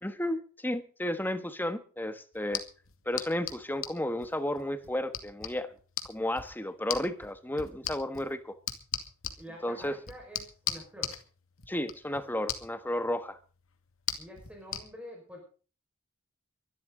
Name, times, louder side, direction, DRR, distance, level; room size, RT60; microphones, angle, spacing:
voice 1, 0.0-2.6 3.0-5.7 6.1-8.6 9.6-9.9 11.7-13.4, left 1 dB, 10° left, 1.4 m, -33 dB
sound 1, 2.3-14.8, left 10 dB, 80° left, 2.2 m, -41 dB
voice 2, 9.4-11.2 14.2-15.4, equal, 5° right, 5.4 m, -47 dB
23.0 x 12.5 x 4.0 m
head